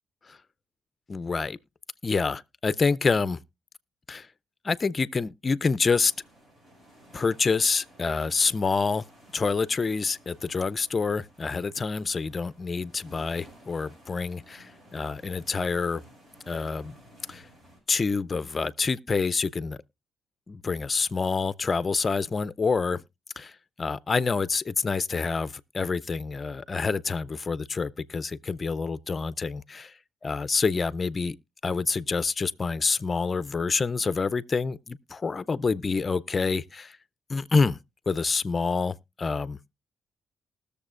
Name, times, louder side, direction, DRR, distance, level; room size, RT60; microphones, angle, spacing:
voice 1, 1.1-1.6 2.0-3.4 4.1-4.3 4.6-6.1 7.1-9.1 9.3-16.0 16.5-17.0 17.3-17.4 17.9-19.8 20.5-23.0 23.4-30.0 30.2-31.4 31.6-37.0 37.3-37.8 38.1-39.6, left 4 dB, 35° left, 0.4 m, -27 dB
sound 1, 5.8-17.8, equal, 40° right, 6.8 m, -55 dB
20.0 x 6.8 x 2.4 m
cardioid pair, 90°, 0 cm